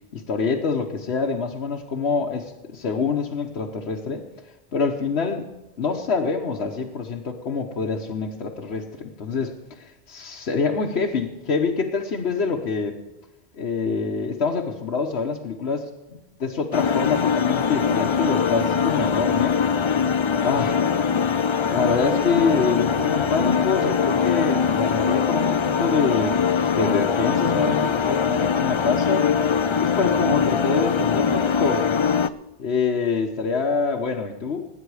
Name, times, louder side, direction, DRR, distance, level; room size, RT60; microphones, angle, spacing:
voice 1, 0.1-4.2 4.7-5.5 5.8-13.0 13.5-19.6 20.4-20.8 21.7-29.3 29.8-32.2 32.6-34.7, left 4 dB, 70° left, 0 dB, 1.3 m, -26 dB
sound 1, 16.7-32.3, left 6 dB, 50° left, 0.3 m, -22 dB
20.0 x 8.9 x 4.8 m, 1.0 s
omnidirectional pair, 1.1 m